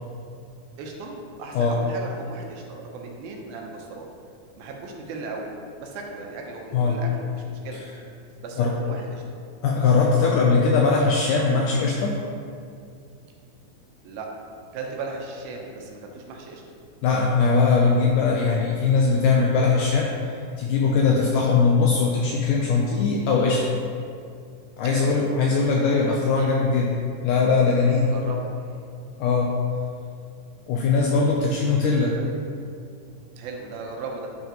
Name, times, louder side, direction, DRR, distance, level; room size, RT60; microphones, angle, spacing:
voice 1, 0.8-4.1 4.6-5.5 5.8-7.8 8.4-9.2 14.0-14.3 14.7-16.6 21.2-21.3 24.8-25.2 26.3-26.6 28.0-28.4 32.2-32.4 33.4-34.3, right 3 dB, 85° right, 0 dB, 2.6 m, -36 dB
voice 2, 9.6-12.2 17.0-20.1 20.6-23.7 24.8-27.0 27.2-28.1 29.2-29.5 30.7-32.2, left 4 dB, 85° left, -1 dB, 1.9 m, -20 dB
9.0 x 5.9 x 2.9 m, 2.4 s
omnidirectional pair, 4.2 m